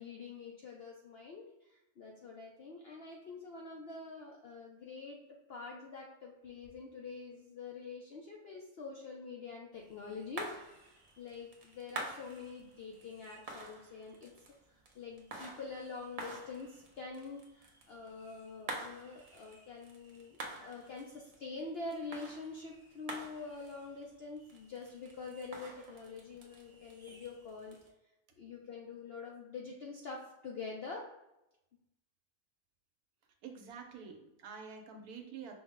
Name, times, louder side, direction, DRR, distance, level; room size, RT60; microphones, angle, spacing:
voice 1, 0.0-14.3 14.7-27.8 28.4-31.1, left 4 dB, 70° left, 0 dB, 0.5 m, -46 dB
sound 1, 9.7-27.9, right 2 dB, 55° right, 0.4 m, -49 dB
voice 2, 33.4-35.5, right 6 dB, 80° right, 4 dB, 1.2 m, -48 dB
5.2 x 2.1 x 3.5 m, 0.92 s
omnidirectional pair, 1.6 m